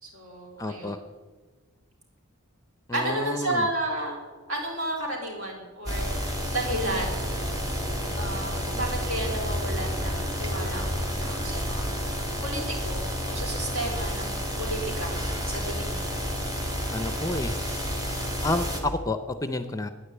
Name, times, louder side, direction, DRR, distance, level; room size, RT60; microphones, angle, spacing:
voice 1, 0.0-1.0 2.9-4.2 4.5-7.3 8.2-16.2, right 1 dB, 65° right, -1 dB, 3.9 m, -32 dB
voice 2, 0.6-1.0 2.9-3.7 16.9-17.6 18.4-19.9, left 2 dB, 15° left, 10 dB, 0.5 m, -30 dB
sound 1, 5.9-18.8, equal, 15° right, 1.7 m, -30 dB
10.0 x 9.7 x 8.1 m, 1.4 s
head